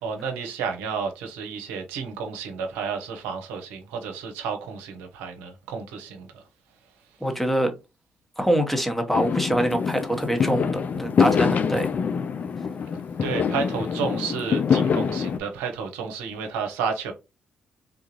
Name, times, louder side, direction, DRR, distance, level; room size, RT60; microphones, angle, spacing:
voice 1, 0.0-6.4 13.2-17.1, right 6 dB, 80° right, 0.7 m, -31 dB
voice 2, 7.2-7.7 8.4-11.9, right 1 dB, 5° left, 1.0 m, -24 dB
Fireworks, 9.1-15.4, left 6 dB, 50° left, 0.4 m, -25 dB
3.6 x 2.5 x 3.0 m
hypercardioid pair, 45°, 3 cm